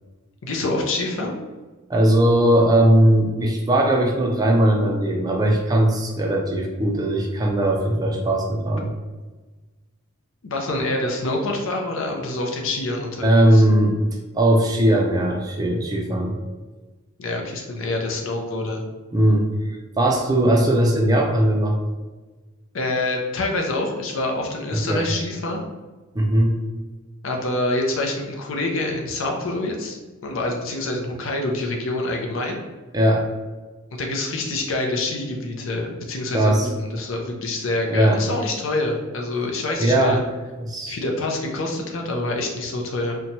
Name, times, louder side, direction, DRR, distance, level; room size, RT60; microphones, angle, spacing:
voice 1, 0.4-1.4 10.4-13.6 17.2-18.8 22.7-25.6 27.2-30.0 30.2-32.6 33.9-40.2 40.8-43.2, left 2 dB, 65° left, 1 dB, 0.5 m, -26 dB
voice 2, 1.9-8.9 13.2-14.0 14.3-16.3 19.1-19.7 20.0-21.8 24.7-25.1 26.2-26.6 32.9-33.3 36.3-36.7 37.9-38.2 39.8-40.2 40.6-41.0, right 1 dB, 20° right, 1 dB, 0.3 m, -19 dB
2.9 x 2.2 x 2.7 m, 1.3 s
head